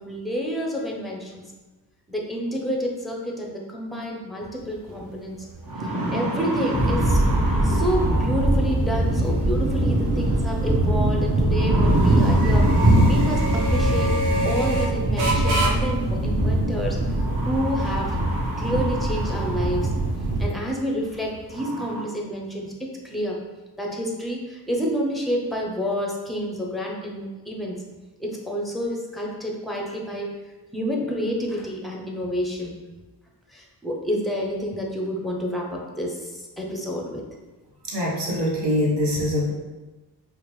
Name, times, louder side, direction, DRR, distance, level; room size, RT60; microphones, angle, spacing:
voice 1, 0.0-1.4 2.1-5.4 5.8-7.3 7.6-14.1 14.4-18.2 18.6-19.9 20.4-22.7 23.0-23.4 23.8-27.8 28.2-30.3 30.7-32.7 33.5-37.2, equal, ahead, -1 dB, 0.6 m, -29 dB
sound 1, 4.4-21.6, right 1 dB, 90° right, 0.7 m, -33 dB
sound 2, 4.9-5.0 5.4-8.9 10.3-10.7 11.5-14.3 15.5-15.6 17.1-20.0 20.5-20.6 21.1-21.2 21.5-22.0, right 1 dB, 55° right, 1.1 m, -30 dB
sound 3, 6.7-20.5, right 1 dB, 25° right, 0.9 m, -22 dB
voice 2, 37.8-39.5, left 1 dB, 70° right, -3 dB, 1.2 m, -23 dB
4.9 x 2.0 x 3.1 m, 1.2 s
cardioid pair, 95°, 41 cm